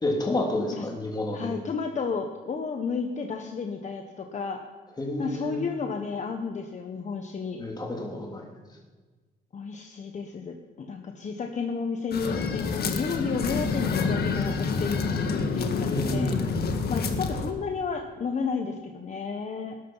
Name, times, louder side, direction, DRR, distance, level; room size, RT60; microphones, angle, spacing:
voice 1, 0.0-1.5 5.0-5.6 7.6-8.5 15.9-16.5, left 1 dB, 25° left, 0 dB, 3.3 m, -29 dB
voice 2, 1.3-4.6 5.2-7.6 9.5-16.4 16.9-19.7, left 5 dB, 45° left, 4 dB, 1.3 m, -32 dB
sound 1, 12.1-17.5, left 4 dB, 65° left, 1.7 m, -28 dB
18.5 x 13.0 x 5.7 m, 1.4 s
cardioid pair, 120°, 17 cm